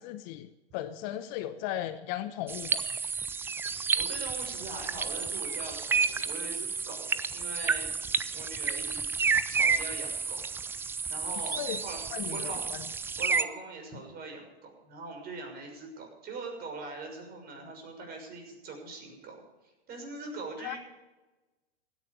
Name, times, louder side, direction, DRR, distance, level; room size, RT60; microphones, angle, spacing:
voice 1, 0.0-3.0 11.6-11.8 12.1-12.5 20.6-20.8, left 12 dB, 40° left, 11 dB, 0.9 m, -36 dB
sound 1, 2.5-13.4, right 5 dB, 5° right, 0.4 m, -31 dB
voice 2, 3.9-7.9 8.3-9.0 9.5-10.4 10.7-12.6 13.2-20.8, right 3 dB, 30° right, 3 dB, 6.4 m, -42 dB
16.5 x 10.5 x 6.9 m, 1.1 s
hypercardioid pair, 110°, 32 cm